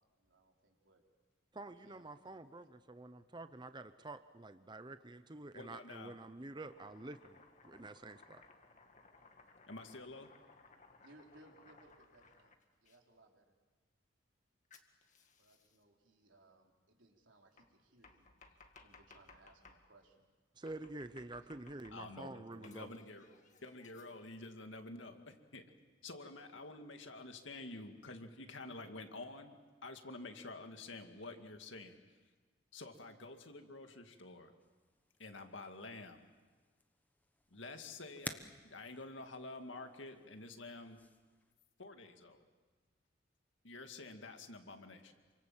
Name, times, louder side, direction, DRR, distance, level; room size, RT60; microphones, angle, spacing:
voice 1, 0.2-1.0 1.8-2.4 11.0-12.5 12.8-13.5 15.4-18.6 18.8-20.3 21.5-21.6, right 2 dB, 80° right, 1 dB, 3.8 m, -65 dB
voice 2, 1.5-7.4 7.6-8.4 20.6-22.9, right 2 dB, 25° right, 10 dB, 0.8 m, -48 dB
voice 3, 5.5-6.2 9.7-10.3 21.9-23.3 23.6-25.7 26.0-32.2 32.7-34.5 35.2-36.3 37.5-41.0 41.8-42.4 43.6-45.1, left 2 dB, 80° left, 5 dB, 2.2 m, -49 dB
Domestic sounds home sounds, 6.6-13.0 14.7-15.8 17.6-19.8 20.7-22.2 22.6-24.4, left 4 dB, 40° left, 1.9 m, -63 dB
sound 1, 34.6-41.5, left 2 dB, 10° left, 1.0 m, -54 dB
28.0 x 25.0 x 7.5 m, 1.4 s
head